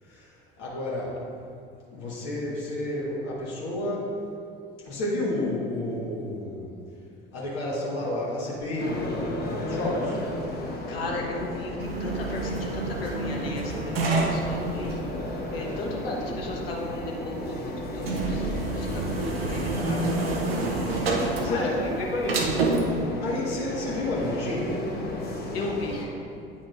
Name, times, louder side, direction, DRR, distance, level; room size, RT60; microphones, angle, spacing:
voice 1, 0.0-1.2 1.9-4.2 4.8-6.7 7.3-10.2 21.3-21.8 23.2-24.9, left 1 dB, 55° left, -5 dB, 1.4 m, -31 dB
sound 1, 8.8-26.1, left 2 dB, 30° left, 1.1 m, -34 dB
voice 2, 10.9-15.0 15.5-20.6 21.4-22.7 25.5-26.2, left 1 dB, 75° left, -1 dB, 1.1 m, -35 dB
sound 2, 11.8-23.0, right 3 dB, 80° right, 0.8 m, -29 dB
8.9 x 5.8 x 2.5 m, 2.5 s
figure-of-eight pair, 65°, 30 cm